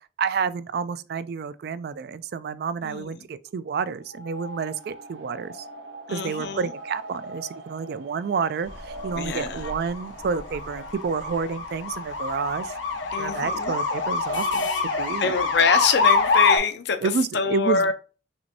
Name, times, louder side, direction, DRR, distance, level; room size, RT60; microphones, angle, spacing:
voice 1, 0.2-5.6 6.1-12.8 13.2-14.7 14.9-15.3 17.0-17.8, right 5 dB, 55° right, 0.3 m, -29 dB
sound 1, 4.0-11.6, right 1 dB, 85° right, 0.7 m, -42 dB
voice 2, 6.1-6.7 9.2-9.6 13.1-13.7 15.2-17.9, left 5 dB, 60° left, 0.6 m, -25 dB
sound 2, 8.7-16.6, left 4 dB, 85° left, 1.0 m, -25 dB
6.0 x 2.6 x 2.7 m
head